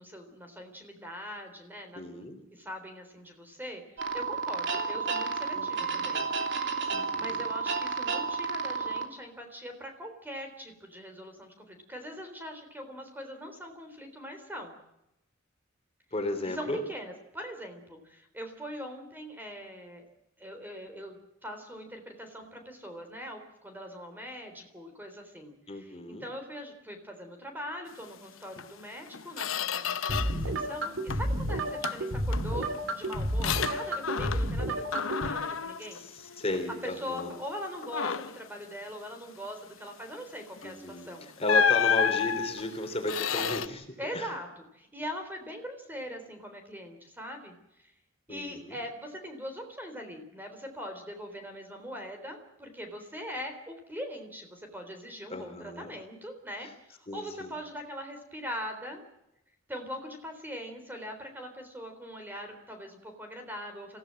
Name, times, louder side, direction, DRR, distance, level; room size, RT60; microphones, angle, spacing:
voice 1, 0.0-3.8 4.1-6.9 7.2-14.8 16.4-20.1 20.4-36.0 36.3-36.4 36.8-41.3 43.3-43.5 44.0-47.9 48.3-59.0 59.7-64.0, equal, 10° right, 5 dB, 3.7 m, -42 dB
voice 2, 1.9-2.4 5.5-6.1 6.9-7.4 16.1-16.8 25.7-26.3 30.1-30.7 35.9-37.3 40.6-41.1 41.4-43.8 44.1-44.3 48.3-48.8 55.3-55.9 57.1-57.5, left 1 dB, 30° left, 5 dB, 3.3 m, -35 dB
sound 1, 4.0-9.1, right 4 dB, 65° right, 2.9 m, -31 dB
Squeak, 28.6-28.7 29.1-30.5 30.8-31.4 31.8-34.6 34.9-36.8 37.2-37.4 37.8-38.5 40.6-40.8 41.5-43.7, left 7 dB, 90° left, 1.0 m, -31 dB
sound 2, 30.1-35.3, right 1 dB, 80° right, 2.6 m, -31 dB
26.5 x 16.0 x 7.7 m, 0.87 s
head